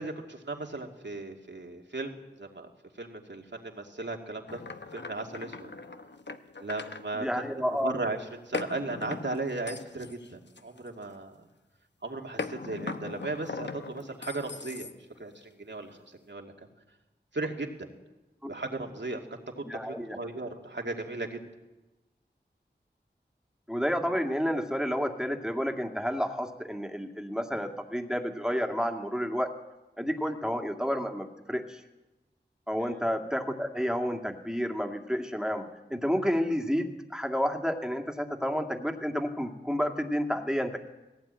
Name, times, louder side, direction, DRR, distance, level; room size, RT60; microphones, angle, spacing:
voice 1, 0.0-2.7 3.0-4.6 4.9-5.7 6.6-7.5 7.7-11.3 12.0-14.9 15.2-16.5 17.3-17.9 18.4-19.2 19.6-21.4 32.8-32.9, right 2 dB, 80° right, 2 dB, 2.4 m, -36 dB
sound 1, 4.5-7.0 8.5-11.2 12.4-15.2, left 3 dB, 70° left, 1.0 m, -39 dB
voice 2, 7.1-8.0 18.4-18.5 19.6-20.2 23.7-29.5 30.0-31.8 32.7-35.6 35.9-40.8, equal, 5° right, 4 dB, 2.2 m, -30 dB
18.5 x 16.5 x 9.0 m, 1.1 s
wide cardioid pair, 40°, 19 cm